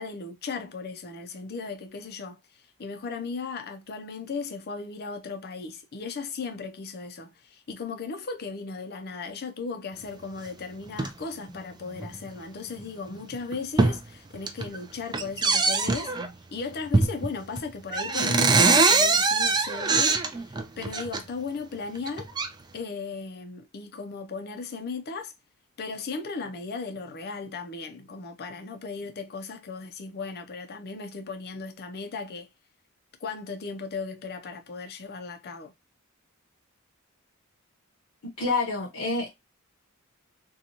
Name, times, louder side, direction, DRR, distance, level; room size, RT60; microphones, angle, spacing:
voice 1, 0.0-2.4 2.8-16.1 16.5-22.3 22.7-25.3 25.8-32.5 33.2-35.7, left 4 dB, 50° left, 0.5 m, -36 dB
sound 1, 10.9-11.1 12.0-12.2 12.8-12.9 13.3-14.0 14.3-14.8 15.1-16.3 16.9-17.3 17.6-17.7 17.9-21.2 22.0-22.5, right 3 dB, 20° right, 0.3 m, -23 dB
voice 2, 38.2-39.3, left 3 dB, 80° left, 0.8 m, -28 dB
2.8 x 2.3 x 2.6 m
head